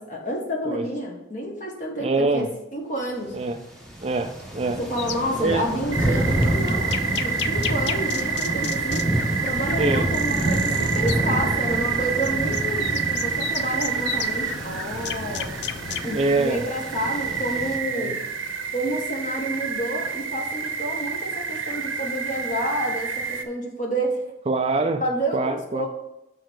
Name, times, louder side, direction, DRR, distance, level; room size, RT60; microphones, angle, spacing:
voice 1, 0.0-3.3 4.8-9.1 9.4-15.5 16.0-18.2 18.7-24.3 25.0-25.9, equal, 40° left, -1 dB, 1.6 m, -29 dB
voice 2, 2.0-2.5 3.3-3.6 4.0-4.8 5.4-5.6 9.8-10.1 16.1-16.6 17.2-17.4 17.9-18.1 24.5-25.0 25.3-25.9, right 3 dB, 30° right, 7 dB, 0.4 m, -24 dB
sound 1, 3.3-3.5 3.8-17.8, right 1 dB, 5° left, 1.0 m, -29 dB
sound 2, 5.0-16.0, left 8 dB, 60° left, 0.4 m, -34 dB
sound 3, 5.9-23.4, right 6 dB, 85° right, 0.7 m, -29 dB
6.4 x 4.5 x 6.3 m, 0.91 s
head